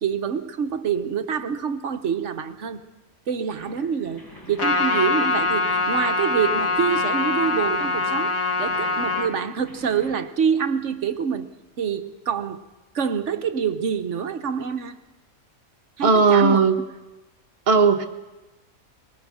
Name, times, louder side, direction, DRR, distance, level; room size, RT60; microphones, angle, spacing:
voice 1, 0.0-2.8 3.3-8.3 8.6-11.5 11.8-12.6 12.9-15.0 16.0-16.6, right 7 dB, 60° right, 9 dB, 1.3 m, -26 dB
sound 1, 3.6-10.1, left 1 dB, 15° left, 4.6 m, -45 dB
Trumpet, 4.6-9.3, left 3 dB, 75° left, 2.1 m, -23 dB
voice 2, 16.0-16.8 17.7-18.0, right 5 dB, 35° right, 3 dB, 1.4 m, -16 dB
21.5 x 19.5 x 6.4 m, 1.1 s
omnidirectional pair, 1.5 m